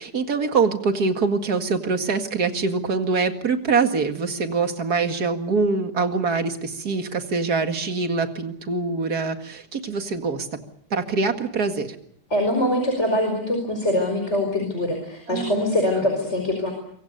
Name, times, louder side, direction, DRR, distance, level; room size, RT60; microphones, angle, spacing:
voice 1, 0.0-10.5 10.9-12.0 15.3-15.7, right 4 dB, 60° right, 6 dB, 2.5 m, -24 dB
voice 2, 12.3-16.7, left 1 dB, 40° left, 3 dB, 5.2 m, -23 dB
26.0 x 24.5 x 6.7 m, 0.66 s
omnidirectional pair, 1.8 m